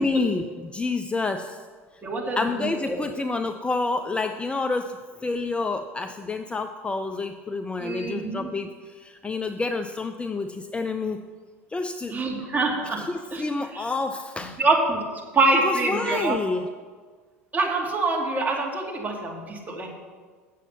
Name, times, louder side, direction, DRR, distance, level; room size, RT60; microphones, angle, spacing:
voice 1, 0.0-1.6 2.4-11.2 11.7-12.2 12.8-14.6 15.6-16.7, left 3 dB, 15° left, 8 dB, 0.5 m, -28 dB
voice 2, 2.0-3.0 7.8-8.5 12.1-13.0 13.3-13.8 14.6-15.0 15.3-16.4 17.5-19.9, right 3 dB, 20° right, -1 dB, 2.6 m, -25 dB
8.4 x 7.3 x 6.7 m, 1.5 s
hypercardioid pair, 75°, 7 cm